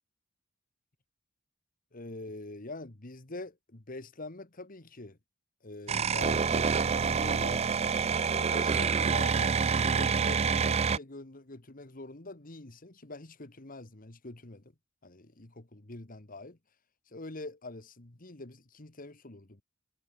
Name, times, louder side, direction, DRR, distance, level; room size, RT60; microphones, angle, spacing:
voice 1, 1.9-5.2 5.6-7.7 8.2-14.7 15.0-16.6 17.1-19.6, left 2 dB, 45° left, 1.7 m, -44 dB
sound 1, 5.9-11.0, right 5 dB, 30° right, 0.4 m, -27 dB
head